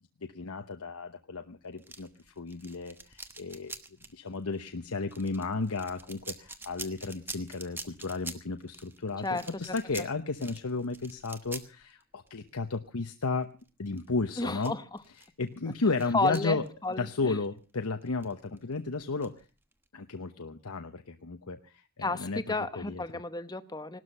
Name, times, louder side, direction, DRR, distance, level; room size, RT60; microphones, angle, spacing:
voice 1, 0.2-3.7 4.1-13.5 13.8-14.7 15.2-16.6 17.0-19.3 19.9-23.0, left 3 dB, 80° left, 7 dB, 1.0 m, -33 dB
sound 1, 1.8-17.6 18.0-19.9, right 3 dB, 10° right, 1.1 m, -46 dB
voice 2, 14.4-15.0 16.1-17.4 22.0-24.0, left 2 dB, 20° left, 11 dB, 0.9 m, -32 dB
18.5 x 12.5 x 5.5 m, 0.36 s
head